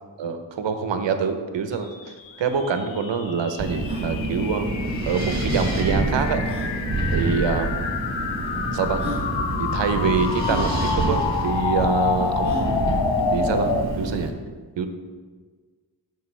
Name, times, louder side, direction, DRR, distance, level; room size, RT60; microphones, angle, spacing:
voice 1, 0.2-1.9 2.4-6.4 7.1-7.8 8.7-9.0 9.6-13.0 13.3-14.3 14.8-14.9, right 5 dB, 75° right, 8 dB, 0.8 m, -25 dB
sound 1, 2.0-13.8, left 5 dB, 85° left, 0.7 m, -28 dB
sound 2, 2.2-2.3 2.5-2.6 3.1-3.2 3.7-4.1 5.4-5.5 6.4-6.7 7.7-7.8 8.6-8.7 9.0-9.3 10.4-10.7 12.4-12.8, right 1 dB, 15° right, 2.1 m, -35 dB
Wind, 3.6-14.3, right 2 dB, 40° right, 1.8 m, -27 dB
12.5 x 4.9 x 3.3 m, 1.5 s
cardioid pair, 50°, 44 cm